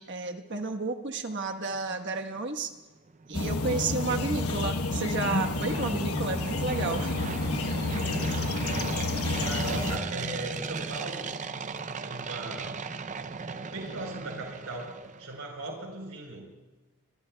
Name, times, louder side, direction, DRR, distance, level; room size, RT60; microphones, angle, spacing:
voice 1, 0.0-2.7 3.3-7.1 9.2-9.4, right 3 dB, 55° right, 5 dB, 1.3 m, -32 dB
sound 1, 3.1-15.4, right 4 dB, 35° right, 0.5 m, -38 dB
sound 2, 3.3-10.0, left 2 dB, 80° left, 1.1 m, -30 dB
voice 2, 9.2-11.3 12.0-12.8 13.5-16.5, right 2 dB, 85° right, 0 dB, 4.1 m, -38 dB
26.0 x 23.0 x 2.3 m, 1.2 s
head